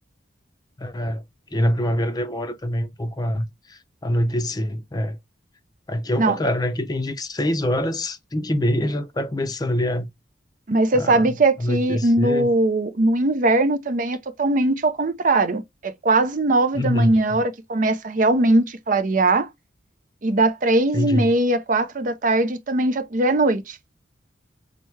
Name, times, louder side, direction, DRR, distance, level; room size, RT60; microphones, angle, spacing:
voice 1, 0.8-1.2 1.5-5.2 5.9-10.1 10.9-12.5 16.7-17.4 20.9-21.3, left 1 dB, 20° left, 0.5 m, -25 dB
voice 2, 10.7-19.5 20.2-23.8, right 2 dB, 45° right, 0.5 m, -20 dB
5.9 x 2.1 x 3.2 m
head